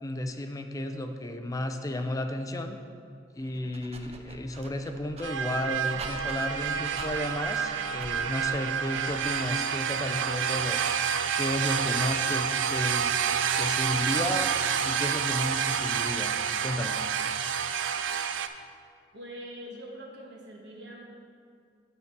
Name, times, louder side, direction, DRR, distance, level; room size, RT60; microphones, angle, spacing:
voice 1, 0.0-2.8 3.4-10.8 11.4-13.1 13.6-16.4 16.6-17.0, left 1 dB, 20° left, 6 dB, 0.4 m, -33 dB
Dog, 3.4-9.5, right 2 dB, 35° right, 0.5 m, -45 dB
sound 1, 5.2-18.5, right 7 dB, 85° right, 0.4 m, -29 dB
voice 2, 19.1-21.0, equal, 65° right, 0 dB, 1.3 m, -43 dB
8.2 x 4.6 x 5.8 m, 2.2 s
head